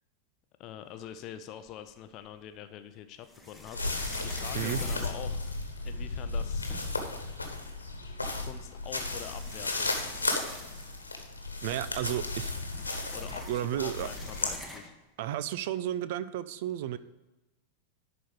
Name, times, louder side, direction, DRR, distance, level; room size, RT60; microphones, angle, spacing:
voice 1, 0.6-5.5 5.8-6.7 8.5-10.0 13.1-14.9, left 10 dB, 40° left, 9 dB, 0.6 m, -45 dB
sound 1, 1.7-2.4 3.2-6.0 6.4-6.5 6.7-7.2 8.2-8.3 8.9-11.2 11.5-11.6 11.9-15.1, left 1 dB, ahead, 1.2 m, -47 dB
sound 2, 3.7-14.5, left 2 dB, 80° left, 1.3 m, -34 dB
voice 2, 11.6-12.5 13.5-14.1 15.2-17.0, right 12 dB, 50° right, 15 dB, 0.5 m, -32 dB
11.0 x 4.3 x 6.8 m, 1.0 s
figure-of-eight pair, 90°, 0 cm